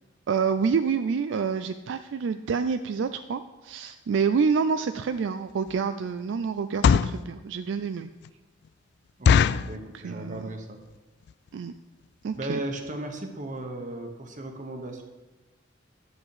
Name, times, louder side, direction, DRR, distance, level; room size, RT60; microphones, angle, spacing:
voice 1, 0.3-8.1 9.9-10.5 11.5-11.7 12.2-12.6, right 5 dB, 70° right, 10 dB, 0.4 m, -27 dB
sound 1, 5.0-5.2 5.7-5.9 6.6-7.2 7.8-7.9 8.2-8.3 8.6-8.7 9.2-9.8 10.3-10.6 10.9-11.0 11.2-11.5 12.0-12.1 12.3-12.5 12.9-13.0 13.2-13.3, left 6 dB, 60° left, 0.3 m, -21 dB
voice 2, 9.2-10.8 12.3-15.0, right 1 dB, 45° right, 4 dB, 1.2 m, -36 dB
11.0 x 7.5 x 4.9 m, 1.2 s
head